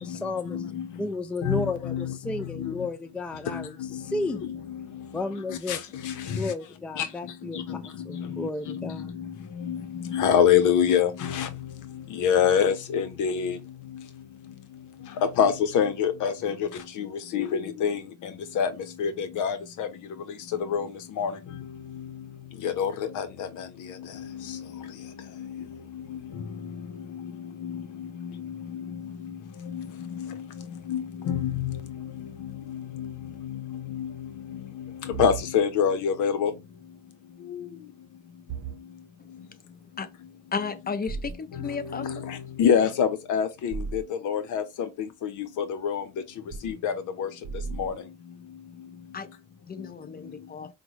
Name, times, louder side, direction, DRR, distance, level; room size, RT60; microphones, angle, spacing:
voice 1, 0.0-0.6 1.0-4.5 5.1-5.8 6.4-9.1, left 2 dB, 5° left, 0.3 m, -33 dB
voice 2, 0.5-0.9 1.4-2.1 2.6-2.7 3.5-4.8 5.5-5.8 6.0-6.5 7.0-7.1 7.6-7.8 8.1-9.2 9.6-11.5 12.1-13.6 15.4-16.7 17.0-17.1 17.3-18.0 18.6-18.7 19.0-19.9 20.7-20.9 21.2-21.3 22.6-23.7 24.5-24.6 25.4-25.6 26.1-26.2 27.1-27.3 27.6-28.8 29.7-29.9 30.2-30.4 30.9-31.7 32.7-33.1 33.4-34.1 34.5-34.6 35.1-36.5 42.0-44.6 45.0-45.3 45.6-46.0 46.6-46.9 47.2-47.3 47.8-47.9, left 8 dB, 85° left, 0.8 m, -26 dB
sound 1, 35.1-35.4 38.5-38.8 41.1-41.4 43.7-44.0 46.5-46.7 47.4-48.0, right 5 dB, 65° right, 0.7 m, -34 dB
voice 3, 40.5-42.1 49.1-49.3 49.7-50.7, left 5 dB, 30° left, 0.8 m, -33 dB
5.1 x 2.2 x 3.1 m
cardioid pair, 90°, 30 cm